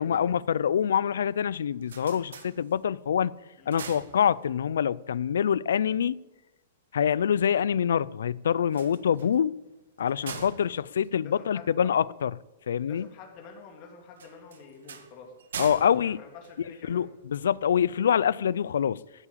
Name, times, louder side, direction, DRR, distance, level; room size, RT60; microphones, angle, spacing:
voice 1, 0.0-3.3 3.7-6.2 6.9-9.5 10.0-12.3 12.7-13.1 15.6-16.2 16.6-19.0, left 8 dB, 85° left, 0.4 m, -25 dB
sound 1, 1.6-3.1 3.5-4.8 8.6-12.0 14.1-17.2, right 7 dB, 85° right, 1.8 m, -44 dB
voice 2, 11.2-12.0 12.9-15.3 15.9-17.1, left 5 dB, 35° left, 2.6 m, -48 dB
14.5 x 7.4 x 8.6 m
hypercardioid pair, 155°, 0 cm